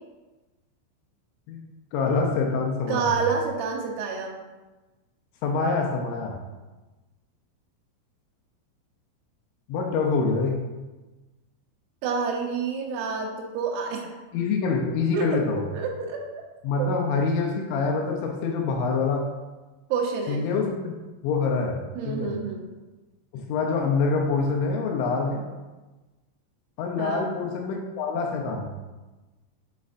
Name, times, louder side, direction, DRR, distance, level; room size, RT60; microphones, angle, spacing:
voice 1, 1.9-3.1 5.4-6.4 9.7-10.6 14.3-15.6 16.6-19.2 20.3-20.9 21.2-21.8 22.1-22.3 23.3-25.4 26.8-28.7, left 4 dB, 80° left, 1 dB, 2.9 m, -25 dB
voice 2, 2.9-4.4 12.0-14.2 15.1-15.3 15.7-16.4 16.8-16.9 19.9-20.5 22.0-22.7 27.0-27.4, right 5 dB, 85° right, 0 dB, 3.7 m, -28 dB
8.2 x 6.4 x 2.6 m, 1.2 s
omnidirectional pair, 5.9 m